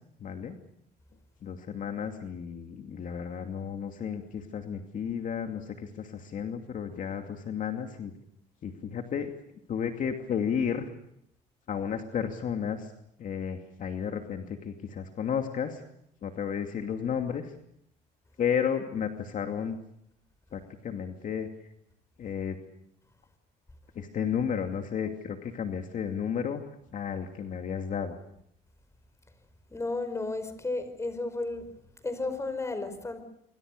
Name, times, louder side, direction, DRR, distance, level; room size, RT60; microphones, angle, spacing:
voice 1, 0.2-0.5 1.4-8.1 8.6-9.3 9.7-10.9 11.7-12.9 13.2-15.8 16.2-17.5 18.4-19.8 20.5-21.5 22.2-22.6 24.0-26.6 26.9-28.2, left 7 dB, 50° left, 5 dB, 2.5 m, -32 dB
voice 2, 29.7-31.7 32.0-33.2, left 2 dB, 15° left, 11 dB, 5.4 m, -33 dB
27.0 x 25.0 x 6.7 m, 0.75 s
cardioid pair, 110°, 17 cm